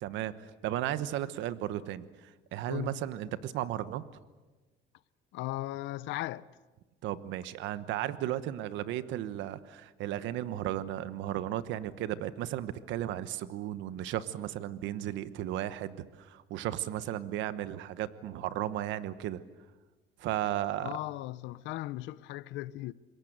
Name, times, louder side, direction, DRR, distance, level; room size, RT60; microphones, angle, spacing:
voice 1, 0.0-4.0 7.0-19.4 20.2-21.0, right 12 dB, 85° right, 1.2 m, -35 dB
voice 2, 2.7-3.0 5.3-6.5 20.8-22.9, left 17 dB, 90° left, 0.8 m, -37 dB
27.0 x 22.0 x 8.0 m
cardioid pair, 125°, 19 cm